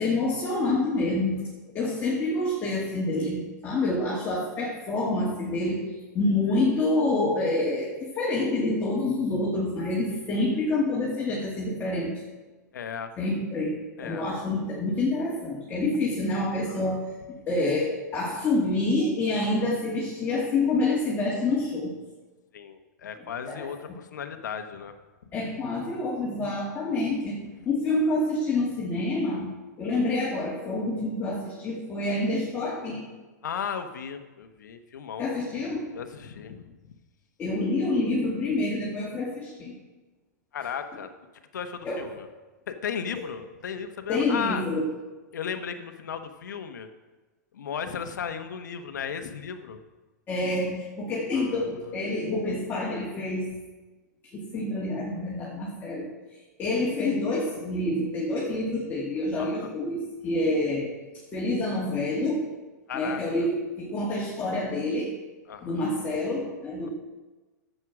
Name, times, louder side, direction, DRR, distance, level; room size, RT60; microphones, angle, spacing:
voice 1, 0.0-1.4 1.7-12.2 13.2-13.8 14.0-17.0 17.5-21.9 23.5-23.7 25.3-27.4 27.7-29.5 29.8-33.1 35.2-35.8 37.4-39.7 41.8-42.0 43.1-43.2 44.1-44.9 50.3-53.5 54.3-56.1 56.6-60.9 61.3-62.5 62.9-65.1 65.6-66.9, left 2 dB, 20° left, -5 dB, 2.5 m, -27 dB
voice 2, 12.7-13.1 14.0-14.2 16.7-16.9 22.5-24.9 33.4-35.3 35.9-37.0 40.5-41.1 41.5-42.3 42.7-44.6 45.3-46.9 47.5-49.8 51.3-51.7 59.4-59.7 62.9-63.5 65.5-65.8 66.8-66.9, left 7 dB, 80° left, 8 dB, 1.2 m, -35 dB
11.0 x 7.9 x 6.1 m, 1.2 s
hypercardioid pair, 135°, 10 cm